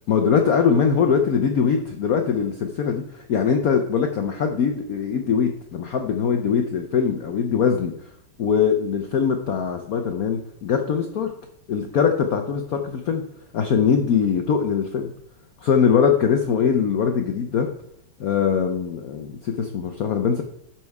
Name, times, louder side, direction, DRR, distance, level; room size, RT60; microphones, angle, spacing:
voice 1, 0.1-7.9 8.4-11.3 11.7-13.2 13.5-15.1 15.6-17.7 18.2-20.4, left 7 dB, 70° left, 5 dB, 0.8 m, -22 dB
12.0 x 4.4 x 4.7 m, 0.70 s
omnidirectional pair, 2.4 m